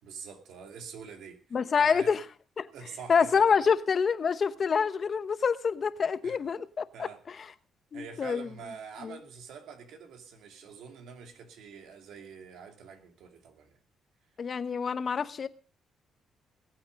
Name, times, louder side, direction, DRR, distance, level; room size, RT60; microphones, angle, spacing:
voice 1, 0.0-2.2 2.7-3.7 6.2-6.4 6.9-7.2 7.9-13.8, right 6 dB, 80° right, 2.6 m, -46 dB
voice 2, 1.5-2.2 2.6-2.7 3.1-7.4 7.9-8.5 9.0-9.1 14.4-15.5, left 6 dB, 45° left, 0.9 m, -27 dB
19.5 x 8.8 x 5.2 m
cardioid pair, 90°, 0 cm